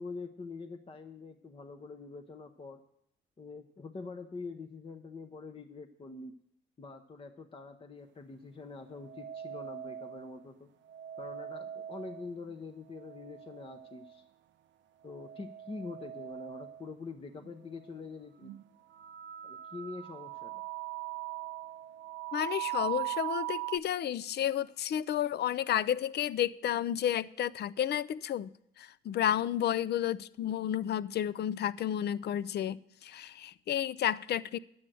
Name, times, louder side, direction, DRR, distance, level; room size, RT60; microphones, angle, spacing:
voice 1, 0.0-2.8 3.4-6.3 6.8-10.7 11.2-14.3 15.0-18.5 19.4-20.5, left 4 dB, 30° left, 6 dB, 0.8 m, -45 dB
sound 1, 9.0-10.3 10.9-12.5 13.0-14.1 15.1-16.8 17.4-17.5 18.4-18.6 18.9-23.8, right 14 dB, 70° right, 0.6 m, -40 dB
voice 2, 22.3-28.5 28.8-34.6, left 10 dB, 55° left, 19 dB, 0.5 m, -31 dB
9.9 x 7.9 x 7.6 m, 0.73 s
cardioid pair, 90°, 20 cm